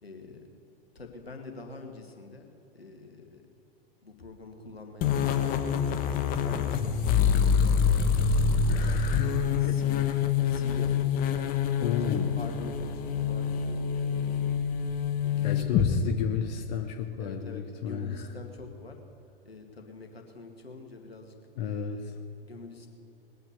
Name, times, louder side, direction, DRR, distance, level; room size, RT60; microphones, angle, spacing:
voice 1, 0.0-0.4 1.0-2.5 2.7-3.4 4.0-6.0 6.4-8.9 9.6-10.1 10.5-11.6 12.4-14.7 15.2-15.8 17.2-19.0 19.4-21.3 21.6-22.1 22.4-22.9, left 3 dB, 80° left, 3 dB, 2.1 m, -46 dB
sound 1, 5.0-15.9, left 6 dB, 30° left, 1.2 m, -26 dB
voice 2, 8.7-10.2 11.8-12.4 15.4-18.3 21.5-22.1, left 8 dB, 45° left, 5 dB, 1.1 m, -33 dB
20.5 x 9.0 x 6.9 m, 2.7 s
figure-of-eight pair, 100°, 30 cm